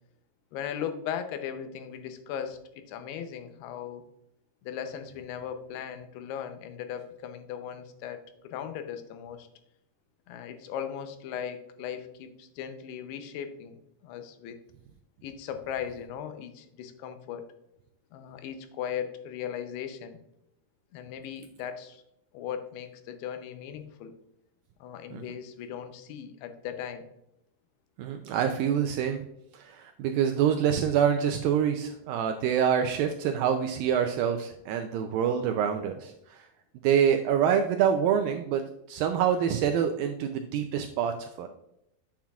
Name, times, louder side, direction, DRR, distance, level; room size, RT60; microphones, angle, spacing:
voice 1, 0.5-4.0 4.6-9.5 10.3-14.6 15.2-17.5 18.1-20.2 20.9-22.0 22.3-24.1 24.8-27.1, left 8 dB, 85° left, 7 dB, 2.8 m, -38 dB
voice 2, 28.0-29.2 29.5-36.5 36.8-38.6 38.9-41.5, right 8 dB, 85° right, 5 dB, 2.0 m, -26 dB
8.8 x 7.2 x 2.3 m, 0.84 s
omnidirectional pair, 4.5 m